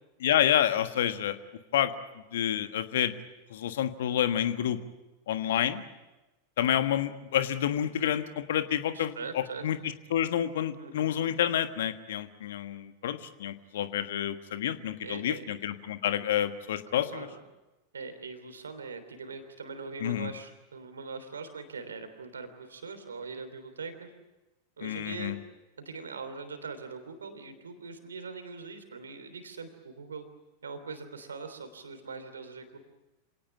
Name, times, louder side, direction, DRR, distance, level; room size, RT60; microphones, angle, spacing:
voice 1, 0.2-1.4 1.7-1.9 2.3-3.1 3.5-4.8 5.3-5.8 6.6-9.8 10.1-17.3 20.0-20.3 24.8-25.3, left 10 dB, 60° left, 10 dB, 1.5 m, -29 dB
voice 2, 8.9-9.7 10.8-11.1 15.0-15.4 16.9-17.4 17.9-24.1 24.8-25.4 25.8-30.2 30.6-32.8, right 4 dB, 70° right, 9 dB, 3.3 m, -42 dB
27.0 x 18.0 x 9.8 m, 1.1 s
figure-of-eight pair, 90°, 0 cm